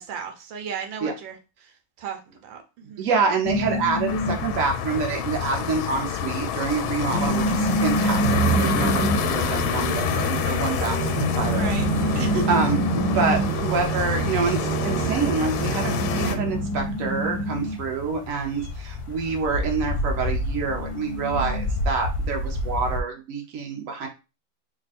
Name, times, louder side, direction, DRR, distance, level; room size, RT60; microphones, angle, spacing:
voice 1, 0.0-3.1 11.5-11.9 12.1-12.5, right 5 dB, 75° right, 4 dB, 1.5 m, -34 dB
voice 2, 3.0-11.7 12.5-24.1, right 5 dB, 55° right, 2 dB, 1.0 m, -27 dB
sound 1, 3.4-23.0, left 1 dB, 65° left, 1.0 m, -28 dB
sound 2, 4.1-16.4, left 9 dB, 85° left, 1.4 m, -28 dB
Musical instrument, 8.2-16.7, right 8 dB, 90° right, 1.4 m, -29 dB
3.6 x 2.2 x 4.1 m, 0.29 s
omnidirectional pair, 2.1 m